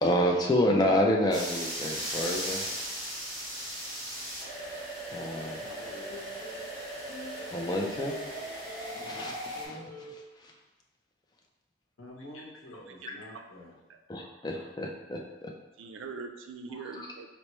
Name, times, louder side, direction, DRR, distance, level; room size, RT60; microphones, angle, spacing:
voice 1, 0.0-2.6 5.1-5.6 7.5-8.4 8.7-10.5 13.1-13.2 14.1-15.5 16.7-17.1, left 1 dB, 20° left, 0 dB, 0.3 m, -29 dB
sound 1, 1.3-9.7, right 1 dB, 40° right, 1.1 m, -37 dB
voice 2, 5.5-6.0 12.0-13.8, left 1 dB, 90° left, -2 dB, 0.8 m, -47 dB
sound 2, 5.8-6.6 7.1-9.3 9.6-10.1, left 2 dB, 60° left, 0.7 m, -46 dB
voice 3, 13.0-13.4 15.8-17.3, right 4 dB, 90° right, 5 dB, 0.4 m, -42 dB
4.3 x 2.1 x 3.0 m, 1.1 s
head